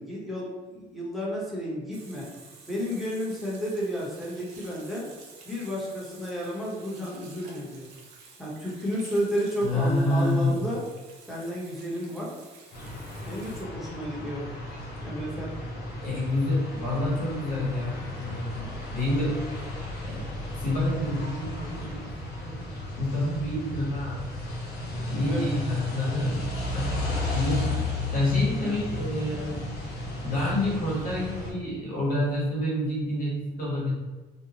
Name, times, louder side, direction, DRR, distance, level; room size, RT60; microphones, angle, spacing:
voice 1, 0.0-2.3 2.7-5.1 5.4-7.9 8.4-10.8 11.3-12.3 13.3-14.5 15.0-15.6 25.3-25.4, equal, ahead, -6 dB, 0.8 m, -32 dB
Water tap faucet / Sink (filling or washing), 1.9-13.6, right 4 dB, 90° right, 0.6 m, -51 dB
voice 2, 9.6-10.6 16.0-18.6 18.9-19.5 20.0-22.1 22.4-22.7 23.0-24.2 25.0-26.4 26.7-27.1 27.3-27.8 28.1-29.7 30.2-33.9, left 1 dB, 55° left, -6 dB, 1.0 m, -28 dB
sound 1, 12.7-31.5, left 2 dB, 80° left, 0.7 m, -34 dB
2.7 x 2.1 x 2.8 m, 1.3 s
cardioid pair, 110°, 17 cm